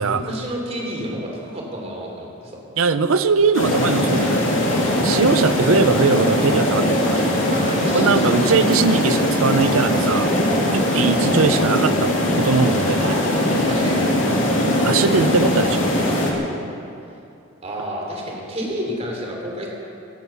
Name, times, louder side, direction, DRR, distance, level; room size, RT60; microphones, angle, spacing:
voice 1, 0.0-2.6 7.5-8.5 10.5-10.8 13.5-14.3 17.6-19.7, equal, 30° right, -1 dB, 3.0 m, -30 dB
voice 2, 2.8-4.5 5.0-7.3 7.9-10.3 10.7-13.2 14.8-15.8, right 4 dB, 80° right, 12 dB, 0.7 m, -20 dB
sound 1, 3.5-16.3, left 1 dB, 65° left, 2.7 m, -20 dB
16.5 x 11.5 x 7.0 m, 2.6 s
head